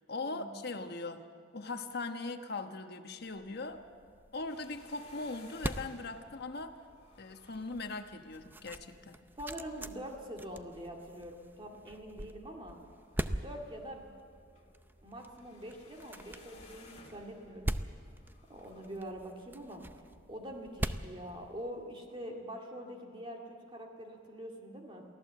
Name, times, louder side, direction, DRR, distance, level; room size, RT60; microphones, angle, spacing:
voice 1, 0.1-1.2 1.5-3.8 4.3-6.8 7.2-9.2, left 3 dB, 55° left, 7 dB, 1.2 m, -40 dB
sound 1, 3.4-22.1, right 1 dB, 10° right, 0.5 m, -43 dB
sound 2, 4.5-19.1, left 3 dB, 35° left, 2.6 m, -61 dB
voice 2, 9.4-12.8 13.4-14.1 15.0-17.7 18.5-19.8 20.3-25.1, equal, 25° right, 1 dB, 2.2 m, -44 dB
23.5 x 15.5 x 7.6 m, 2.1 s
head